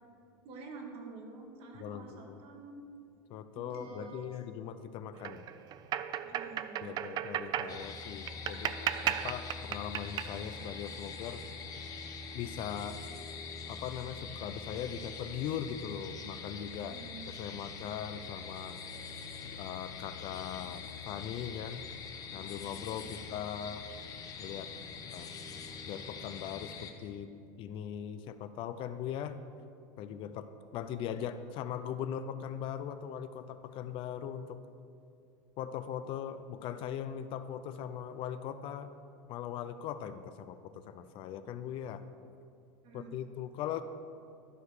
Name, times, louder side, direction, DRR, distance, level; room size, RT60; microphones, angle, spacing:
voice 1, 0.4-2.8 3.5-4.5 6.2-7.2 16.8-17.3 23.0-23.2 41.2-41.3 42.8-43.1, right 3 dB, 55° right, 2 dB, 1.8 m, -48 dB
voice 2, 1.8-2.4 3.3-5.4 6.8-11.4 12.3-13.0 13.7-17.0 17.4-18.8 19.4-21.8 22.3-23.9 24.4-24.7 25.1-25.3 25.9-27.3 27.6-29.4 30.0-34.6 35.6-38.9 39.3-42.0 42.9-43.8, left 9 dB, 50° left, 11 dB, 0.5 m, -40 dB
sound 1, 5.1-11.9, right 11 dB, 40° right, 0.4 m, -37 dB
sound 2, 7.7-26.9, left 5 dB, 30° left, 1.0 m, -44 dB
12.5 x 4.8 x 6.5 m, 2.5 s
supercardioid pair, 130°, 11 cm